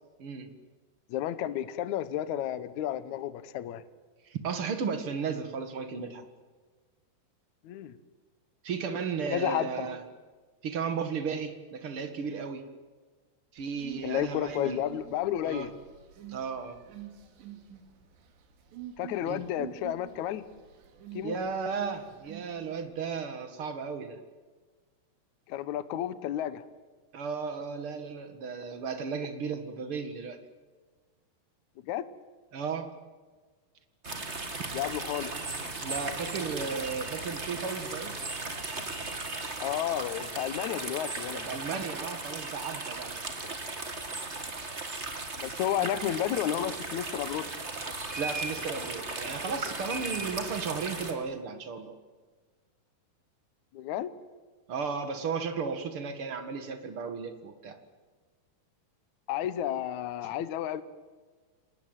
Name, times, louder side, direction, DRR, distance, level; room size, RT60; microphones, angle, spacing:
voice 1, 0.2-0.5 4.2-6.2 8.6-10.0 10.6-12.6 13.5-14.8 15.4-15.7 16.3-16.8 19.2-19.5 21.2-24.2 27.1-30.4 32.5-32.9 35.8-38.1 41.3-43.2 48.2-52.0 54.7-57.8 60.2-60.3, right 5 dB, 50° right, 8 dB, 1.8 m, -34 dB
voice 2, 1.1-3.8 7.6-8.0 9.3-9.9 14.0-15.7 19.0-20.4 21.1-21.3 25.5-26.6 31.9-32.0 34.7-35.3 39.6-41.6 45.4-47.5 53.7-54.1 59.3-60.8, left 11 dB, 90° left, 14 dB, 1.6 m, -32 dB
sound 1, 13.6-22.9, right 11 dB, 85° right, 4.6 m, -47 dB
sound 2, 34.0-51.1, right 3 dB, 25° right, 1.7 m, -37 dB
29.0 x 19.0 x 9.1 m, 1.4 s
omnidirectional pair, 4.9 m